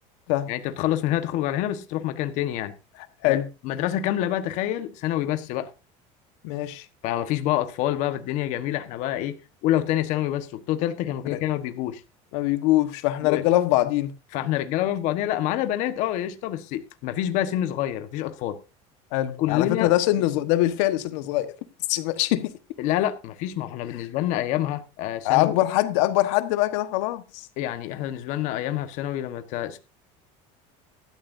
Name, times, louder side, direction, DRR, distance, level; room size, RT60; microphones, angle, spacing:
voice 1, 0.5-2.7 3.2-3.4 3.6-5.7 7.0-9.4 9.6-12.0 13.2-13.4 14.3-18.6 19.4-19.9 22.8-25.6 27.6-29.8, left 13 dB, 55° left, 1.4 m, -27 dB
voice 2, 6.4-6.8 11.3-11.4 12.3-14.1 19.1-21.5 21.9-22.5 25.2-27.5, left 15 dB, 80° left, 1.4 m, -23 dB
16.5 x 13.0 x 2.7 m
cardioid pair, 165°, 15 cm